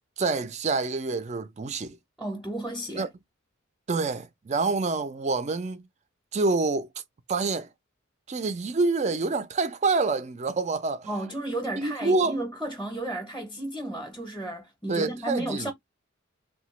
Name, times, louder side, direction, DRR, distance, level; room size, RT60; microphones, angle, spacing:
voice 1, 0.2-2.0 2.9-3.1 3.9-5.8 6.3-6.9 7.3-7.7 8.3-11.1 11.8-12.3 14.9-15.7, right 3 dB, 35° right, 0.4 m, -27 dB
voice 2, 2.2-3.1 11.1-15.7, right 1 dB, ahead, 0.7 m, -33 dB
2.8 x 2.2 x 3.1 m
head